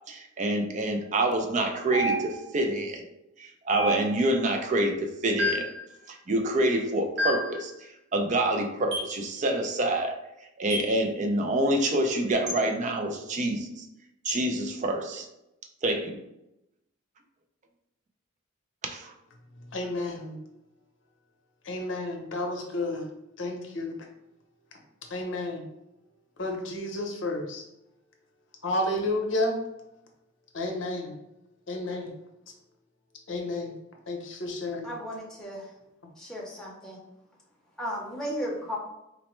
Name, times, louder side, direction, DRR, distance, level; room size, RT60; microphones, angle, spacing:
voice 1, 0.1-3.0 3.4-5.7 6.1-7.7 8.1-10.2 10.6-13.8 14.2-15.3 15.8-16.2 18.8-19.1, right 1 dB, 35° right, 4 dB, 0.4 m, -27 dB
sound 1, 1.9-2.6 3.7-4.4 5.4-5.8 7.2-7.6 8.9-9.2 10.7-11.0 12.5-12.6 14.2-14.4, equal, 60° right, 0.9 m, -30 dB
voice 2, 19.7-20.4 21.6-23.1 23.4-24.0 25.1-25.6 26.4-27.7 28.6-29.6 30.5-31.2 31.7-32.1 33.3-33.7 34.1-34.9, left 2 dB, 65° left, 2 dB, 0.7 m, -31 dB
voice 3, 34.8-35.7 36.2-37.0 37.8-38.8, equal, 5° left, -4 dB, 0.7 m, -35 dB
4.0 x 2.1 x 3.0 m, 0.87 s
head